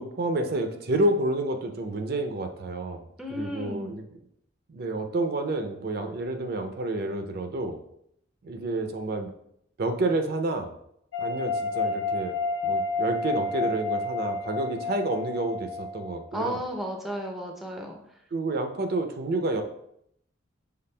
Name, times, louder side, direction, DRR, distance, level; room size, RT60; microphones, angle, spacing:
voice 1, 0.0-3.0 3.4-4.0 4.7-7.8 8.4-9.3 9.8-10.7 11.2-12.4 12.6-16.6 18.3-19.6, right 2 dB, 55° right, 6 dB, 0.5 m, -29 dB
voice 2, 3.2-4.0 16.3-18.2, equal, ahead, 1 dB, 0.4 m, -34 dB
sound 1, 11.1-16.4, left 3 dB, 75° left, 0.4 m, -30 dB
5.8 x 3.4 x 2.2 m, 0.72 s
head